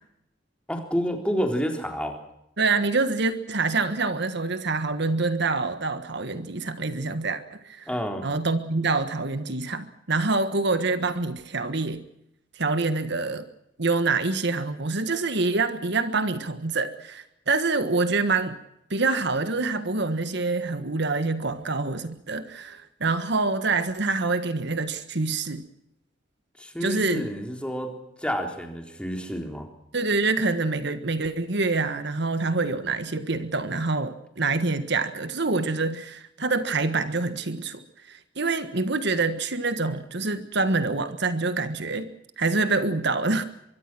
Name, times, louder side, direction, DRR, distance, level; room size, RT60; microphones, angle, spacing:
voice 1, 0.7-2.2 7.9-8.3 26.6-29.7, equal, 5° left, 3 dB, 3.8 m, -29 dB
voice 2, 2.6-7.9 8.2-12.0 12.5-13.4 13.8-18.6 18.9-25.6 26.8-27.3 29.9-37.8 38.1-42.1 42.4-43.4, right 3 dB, 65° right, 10 dB, 1.6 m, -26 dB
24.0 x 23.5 x 6.2 m, 0.79 s
head